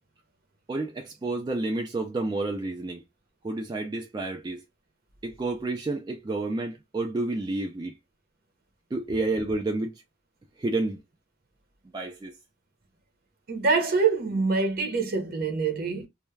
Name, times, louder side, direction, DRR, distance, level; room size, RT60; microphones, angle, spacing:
voice 1, 0.7-3.0 3.4-4.6 5.2-7.9 8.9-10.0 10.6-11.0 11.9-12.4, right 2 dB, 20° right, 0.3 m, -30 dB
voice 2, 13.5-16.1, right 4 dB, 55° right, 0.8 m, -25 dB
2.2 x 2.1 x 3.1 m
head